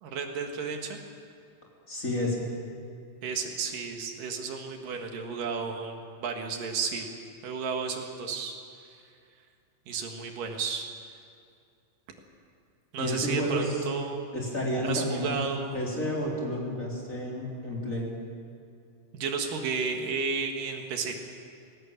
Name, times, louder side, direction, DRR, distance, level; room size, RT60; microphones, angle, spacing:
voice 1, 0.0-1.0 3.2-7.1 7.4-8.6 8.8-9.0 9.9-10.9 12.9-14.3 14.8-15.8 19.1-21.2, right 5 dB, 80° right, 3 dB, 3.4 m, -32 dB
voice 2, 1.9-2.5 13.0-13.8 14.3-15.4 15.7-18.1, equal, 25° left, -3 dB, 4.0 m, -30 dB
20.5 x 17.5 x 8.9 m, 2.4 s
omnidirectional pair, 3.8 m